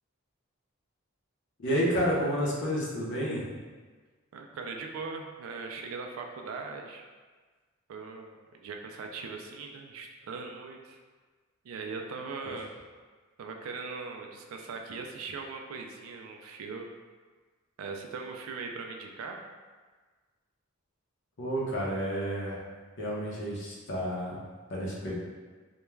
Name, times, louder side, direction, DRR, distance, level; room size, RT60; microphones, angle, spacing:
voice 1, 1.6-3.4 21.4-22.6 23.0-24.4 24.7-25.1, equal, 55° left, -5 dB, 0.7 m, -30 dB
voice 2, 4.3-7.0 7.9-11.0 11.6-12.7 13.4-16.9 17.8-19.4, right 4 dB, 70° right, 3 dB, 0.3 m, -40 dB
2.2 x 2.2 x 3.1 m, 1.4 s
head